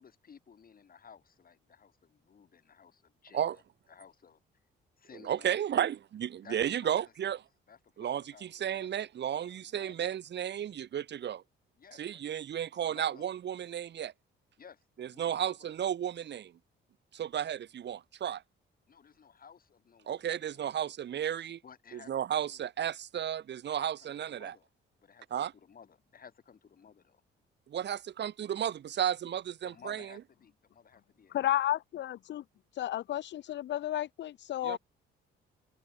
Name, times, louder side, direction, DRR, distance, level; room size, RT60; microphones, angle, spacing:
voice 1, 0.0-3.6 3.9-4.4 5.0-5.6 6.4-7.4 7.7-8.9 9.2-10.2 11.8-12.2 12.5-13.3 14.6-15.7 18.9-20.7 21.6-22.7 23.7-24.7 25.0-27.2 29.6-31.5, left 7 dB, 45° left, 8.0 m, -56 dB
voice 2, 5.2-7.4 8.0-11.4 12.0-14.1 15.0-16.5 17.1-18.4 20.1-21.6 21.9-24.5 25.3-25.5 27.7-30.1 34.6-34.8, right 10 dB, 60° right, 2.1 m, -33 dB
voice 3, 31.3-32.4 32.7-34.8, left 13 dB, 65° left, 0.7 m, -32 dB
cardioid pair, 90°, 20 cm